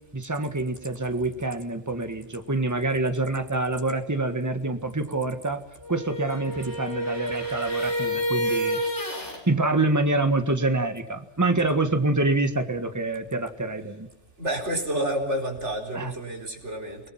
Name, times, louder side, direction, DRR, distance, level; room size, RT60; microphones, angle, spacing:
voice 1, 0.1-5.6 5.9-8.8 9.5-14.1 15.9-16.1, right 2 dB, 15° right, 8 dB, 1.6 m, -26 dB
sound 1, 5.8-9.4, equal, 80° left, 5.4 m, -29 dB
voice 2, 14.4-17.0, right 1 dB, 85° right, 2 dB, 4.6 m, -29 dB
29.5 x 19.5 x 5.8 m, 0.94 s
omnidirectional pair, 1.2 m